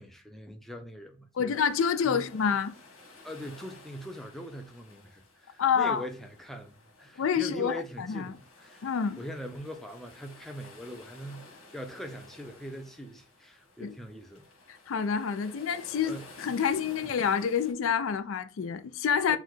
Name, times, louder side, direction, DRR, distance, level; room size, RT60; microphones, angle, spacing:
voice 1, 0.0-1.6 2.0-2.3 3.2-14.5 16.0-16.3 17.0-17.1 19.3-19.4, equal, ahead, 0.4 m, -42 dB
voice 2, 1.4-2.7 5.6-6.0 7.2-7.8 8.1-8.3 8.8-9.2 13.8-13.9 14.9-19.4, left 7 dB, 65° left, 0.4 m, -27 dB
sound 1, 1.5-17.7, left 2 dB, 85° left, 1.9 m, -53 dB
4.5 x 2.2 x 3.9 m
head